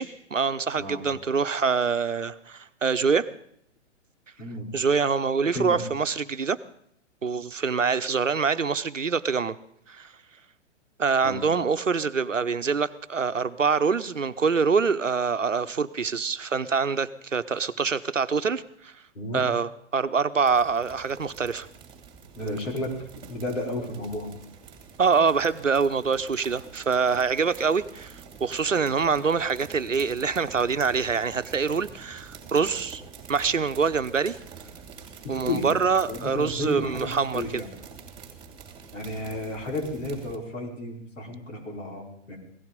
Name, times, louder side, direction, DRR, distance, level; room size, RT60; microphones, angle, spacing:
voice 1, 0.0-3.3 4.7-6.6 7.2-9.6 9.9-10.1 11.0-18.9 19.3-21.7 25.0-33.0 33.3-34.4 35.3-37.6, right 5 dB, 90° right, 12 dB, 0.8 m, -25 dB
voice 2, 19.1-19.5 22.4-23.0 23.3-24.3 35.2-35.8 36.1-37.8 38.9-42.4, left 2 dB, 75° left, 0 dB, 4.8 m, -32 dB
sound 1, 20.4-40.4, right 6 dB, 15° right, 2.7 m, -46 dB
16.5 x 14.5 x 5.2 m, 0.69 s
figure-of-eight pair, 115°, 37 cm